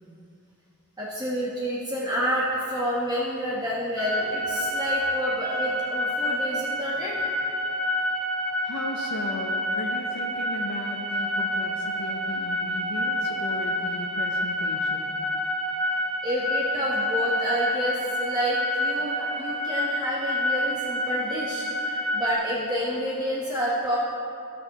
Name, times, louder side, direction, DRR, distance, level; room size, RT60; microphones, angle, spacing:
voice 1, 1.0-7.4 16.2-24.0, equal, 20° right, -6 dB, 1.1 m, -29 dB
sound 1, 4.0-22.3, left 1 dB, 5° left, 0.8 m, -28 dB
voice 2, 8.6-15.1, left 2 dB, 80° left, -1 dB, 0.7 m, -36 dB
16.0 x 6.3 x 2.9 m, 2.7 s
head